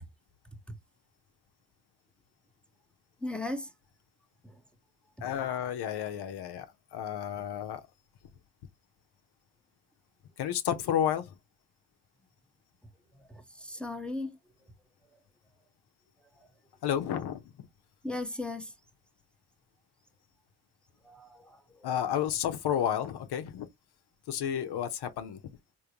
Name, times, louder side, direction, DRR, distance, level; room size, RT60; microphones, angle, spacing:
voice 1, 3.2-3.7 4.4-4.6 13.3-14.4 18.0-18.7 21.0-21.9, left 2 dB, ahead, 0.9 m, -37 dB
voice 2, 5.2-7.8 10.4-11.4 16.8-17.5 21.8-23.7 24.3-25.4, left 9 dB, 75° left, 0.8 m, -31 dB
3.7 x 2.8 x 2.8 m
supercardioid pair, 55°, 40 cm